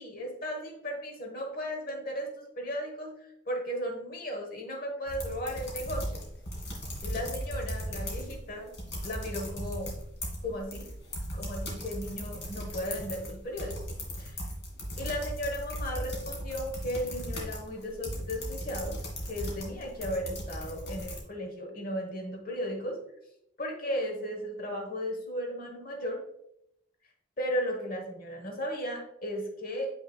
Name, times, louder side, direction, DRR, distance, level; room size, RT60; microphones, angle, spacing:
voice 1, 0.0-6.2 7.0-8.8 9.0-10.0 10.4-10.9 11.3-13.8 14.2-14.4 15.0-19.0 19.3-23.0 23.6-26.2 27.4-29.9, equal, 45° left, 1 dB, 1.2 m, -35 dB
sound 1, 5.1-8.4 8.7-21.2, equal, 65° left, 2.2 m, -37 dB
7.3 x 5.9 x 2.3 m, 0.78 s
head